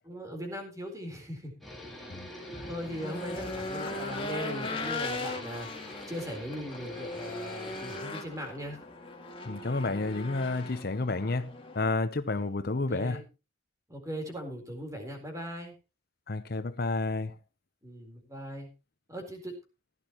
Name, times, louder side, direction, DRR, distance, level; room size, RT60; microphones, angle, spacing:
voice 1, 0.0-1.5 2.7-5.7 6.1-8.8 12.7-13.2 13.9-15.8 17.8-18.7 19.1-19.5, equal, 15° right, 4.1 m, -39 dB
sound 1, 1.6-8.0, left 1 dB, ahead, 3.3 m, -46 dB
Race car auto racing / Engine, 1.8-11.9, left 2 dB, 25° left, 2.3 m, -39 dB
voice 2, 9.5-13.2 16.3-17.3, left 3 dB, 50° left, 0.8 m, -30 dB
16.0 x 12.0 x 3.1 m
head